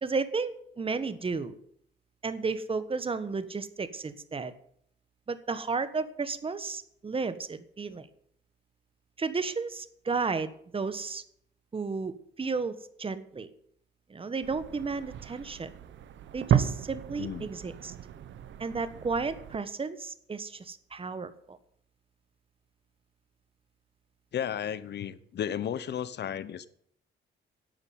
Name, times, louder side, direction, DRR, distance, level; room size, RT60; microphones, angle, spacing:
voice 1, 0.0-1.5 2.2-4.5 5.3-8.1 9.2-11.2 11.7-13.5 14.1-15.7 16.3-17.9 18.6-21.6, right 4 dB, 25° right, 1.3 m, -33 dB
sound 1, 14.4-19.6, right 9 dB, 70° right, 1.0 m, -33 dB
voice 2, 17.2-17.5 24.3-26.7, left 9 dB, 60° left, 1.0 m, -34 dB
11.5 x 8.2 x 9.3 m
cardioid pair, 90°, 20 cm